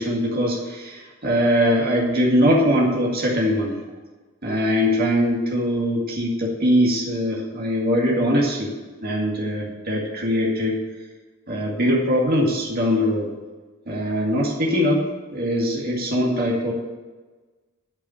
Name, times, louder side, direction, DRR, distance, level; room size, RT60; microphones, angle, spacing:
voice 1, 0.0-3.8 4.4-8.7 9.0-10.8 11.5-13.3 13.9-15.0 15.3-16.7, equal, 50° right, -3 dB, 2.1 m, -21 dB
10.5 x 5.6 x 8.5 m, 1.3 s
head